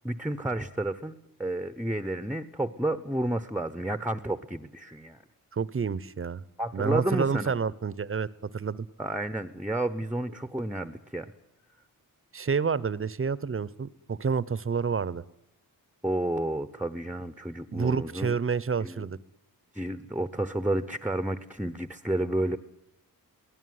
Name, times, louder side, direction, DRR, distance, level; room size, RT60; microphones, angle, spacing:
voice 1, 0.0-5.2 6.6-7.6 9.0-11.3 16.0-18.4 18.8-19.1 19.7-22.6, right 1 dB, 5° right, 11 dB, 0.8 m, -31 dB
voice 2, 5.5-6.4 6.7-8.9 12.3-15.2 17.7-19.2, right 5 dB, 35° right, 19 dB, 0.8 m, -29 dB
24.0 x 17.5 x 9.5 m, 0.81 s
wide cardioid pair, 150°, 36 cm